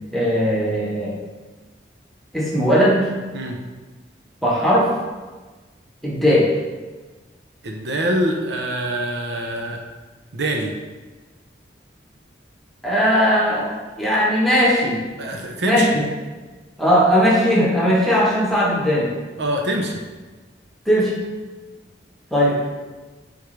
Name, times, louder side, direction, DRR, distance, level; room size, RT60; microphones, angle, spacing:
voice 1, 0.1-1.1 2.3-3.1 4.4-4.9 6.0-6.5 12.8-13.7 14.0-15.0 15.6-16.0 16.8-19.1 20.9-21.2 22.3-22.6, equal, ahead, -5 dB, 1.2 m, -18 dB
voice 2, 7.6-9.8 10.3-10.7 15.2-15.9 19.4-20.0, right 1 dB, 75° right, 1 dB, 0.8 m, -24 dB
8.0 x 3.7 x 3.3 m, 1.3 s
head